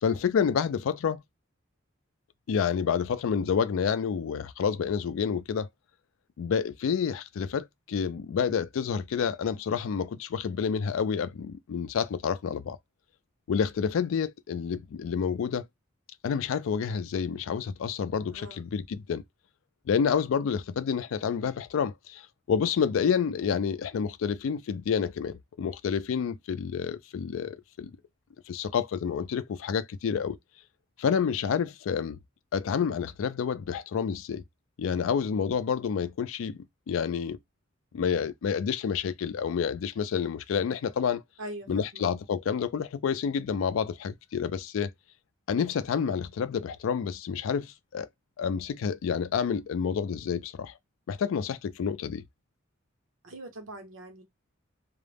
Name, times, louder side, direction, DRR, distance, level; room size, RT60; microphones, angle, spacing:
voice 1, 0.0-1.2 2.5-5.7 6.4-12.8 13.5-15.7 16.2-19.2 19.9-28.0 28.5-30.4 31.0-32.2 32.5-34.4 34.8-37.4 37.9-41.2 41.7-44.9 45.5-48.1 48.4-50.7 51.1-52.2, left 7 dB, 75° left, 0.3 m, -29 dB
voice 2, 18.3-18.6 41.4-42.1 53.2-54.2, right 1 dB, 75° right, 0.9 m, -42 dB
2.3 x 2.1 x 3.3 m
head